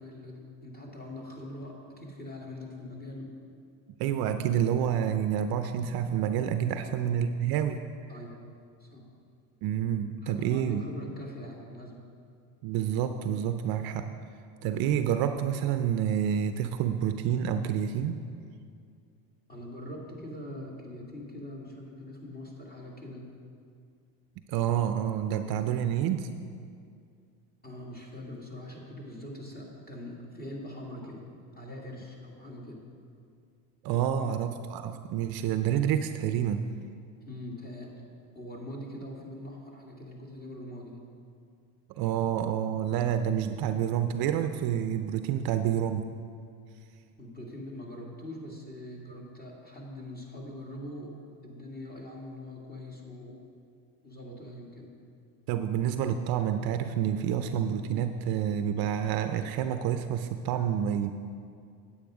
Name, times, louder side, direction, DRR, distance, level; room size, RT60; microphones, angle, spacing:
voice 1, 0.0-3.3 6.7-6.9 8.1-8.4 8.8-9.1 10.2-12.0 14.6-14.8 19.5-23.3 27.6-31.2 31.6-32.8 33.9-34.4 37.2-37.9 38.3-41.0 47.2-51.2 51.4-53.4 54.0-54.9, left 1 dB, 20° left, -1 dB, 2.1 m, -42 dB
voice 2, 4.0-7.8 9.6-10.8 12.6-14.1 14.6-18.2 24.5-26.3 33.8-36.7 41.9-46.1 55.5-61.1, right 9 dB, 55° right, 9 dB, 0.6 m, -28 dB
9.1 x 8.6 x 4.9 m, 2.3 s
supercardioid pair, 110°, 46 cm